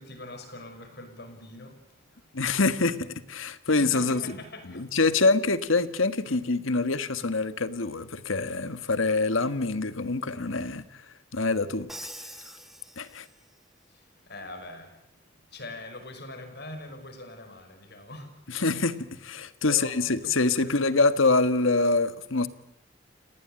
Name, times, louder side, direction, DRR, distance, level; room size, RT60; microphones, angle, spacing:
voice 1, 0.0-1.7 3.7-4.8 6.2-6.4 14.3-15.0 15.5-18.3 19.6-21.0, left 2 dB, 50° left, 7 dB, 5.6 m, -42 dB
voice 2, 2.3-4.3 4.7-11.9 12.2-12.3 13.0-13.3 18.5-22.5, left 3 dB, 75° left, 12 dB, 1.6 m, -25 dB
Crash cymbal, 11.9-13.6, right 1 dB, ahead, 1.5 m, -44 dB
29.5 x 19.0 x 8.9 m, 0.82 s
head